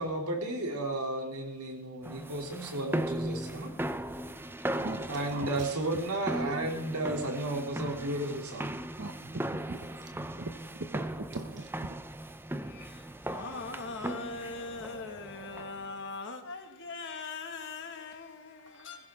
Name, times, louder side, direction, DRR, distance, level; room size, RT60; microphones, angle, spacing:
voice 1, 0.0-3.7 5.1-8.7, right 1 dB, 80° right, 3.2 m, -33 dB
sound 1, 2.0-15.9, right 1 dB, 10° right, 0.6 m, -38 dB
voice 2, 4.8-5.7 9.0-9.4 9.7-10.5 10.9-12.0, right 2 dB, 55° right, 0.9 m, -41 dB
voice 3, 12.5-19.1, left 3 dB, 55° left, 2.0 m, -41 dB
20.0 x 16.0 x 3.7 m
head